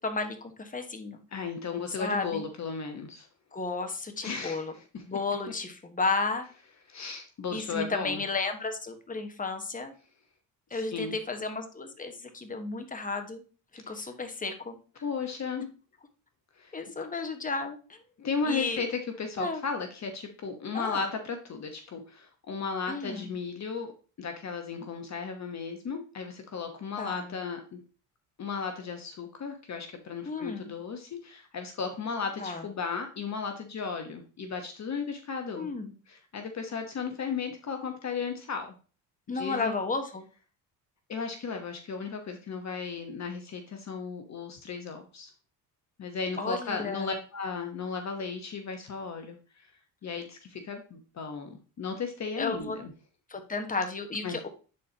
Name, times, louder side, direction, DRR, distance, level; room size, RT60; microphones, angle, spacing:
voice 1, 0.0-1.2 2.0-2.4 3.5-4.7 5.1-6.5 7.5-9.9 10.7-13.4 13.7-14.8 16.7-18.0 18.5-18.8 19.4-19.6 20.7-21.0 22.9-23.3 27.0-27.3 30.2-30.7 32.4-32.6 35.6-35.9 39.3-40.2 46.4-47.2 52.4-52.8 53.3-54.5, left 3 dB, 20° left, 6 dB, 1.4 m, -33 dB
voice 2, 1.3-3.3 4.2-5.0 6.9-8.2 10.7-11.2 13.8-14.1 15.0-15.7 16.6-16.7 18.2-23.9 24.2-27.8 28.4-35.7 36.1-38.7 39.3-39.7 41.1-45.3 46.0-52.9 54.2-54.4, left 5 dB, 40° left, 5 dB, 1.2 m, -35 dB
10.0 x 4.3 x 2.9 m, 0.36 s
supercardioid pair, 65°, 40 cm